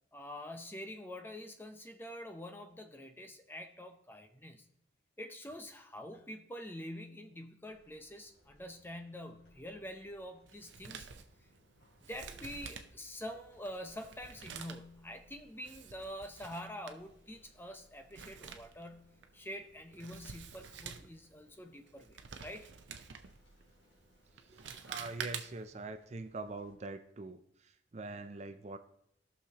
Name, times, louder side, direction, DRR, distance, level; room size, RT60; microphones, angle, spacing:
voice 1, 0.1-4.7 5.2-11.1 12.1-22.7 24.6-24.9, equal, 10° left, 6 dB, 0.6 m, -46 dB
sound 1, 7.6-26.8, equal, 80° left, 3.3 m, -68 dB
Male speech man speaking, 10.5-25.8, right 6 dB, 75° right, 0.7 m, -49 dB
voice 2, 24.3-28.8, right 3 dB, 35° right, 9 dB, 0.4 m, -44 dB
18.0 x 6.4 x 2.9 m, 0.74 s
head